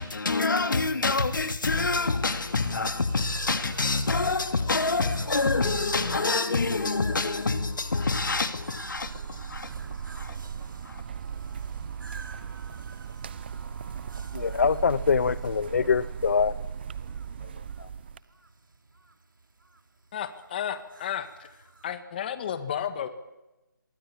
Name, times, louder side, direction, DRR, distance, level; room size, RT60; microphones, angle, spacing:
voice 1, 0.0-10.4 10.8-11.0, left 3 dB, 70° left, 2.9 m, -27 dB
sound 1, 2.2-22.0, right 3 dB, 75° right, 3.2 m, -50 dB
sound 2, 8.8-18.2, right 7 dB, 30° right, 1.0 m, -37 dB
voice 2, 14.3-16.5 17.8-17.9, left 5 dB, 50° left, 0.9 m, -24 dB
voice 3, 20.1-21.5 21.8-23.1, left 9 dB, 25° left, 2.0 m, -32 dB
28.5 x 23.5 x 8.7 m
figure-of-eight pair, 160°, 11 cm